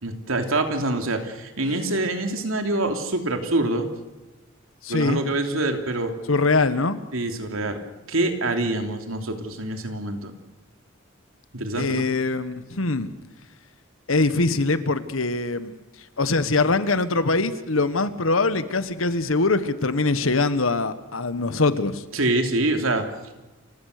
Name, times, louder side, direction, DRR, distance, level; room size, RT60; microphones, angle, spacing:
voice 1, 0.0-3.9 4.9-6.1 7.1-7.8 8.1-10.3 11.5-12.0 22.1-23.0, right 2 dB, 85° right, 5 dB, 2.9 m, -25 dB
voice 2, 4.8-5.2 6.3-7.0 11.8-13.1 14.1-15.7 16.2-22.0, left 3 dB, 80° left, 13 dB, 1.4 m, -23 dB
29.5 x 16.5 x 6.6 m, 1.1 s
head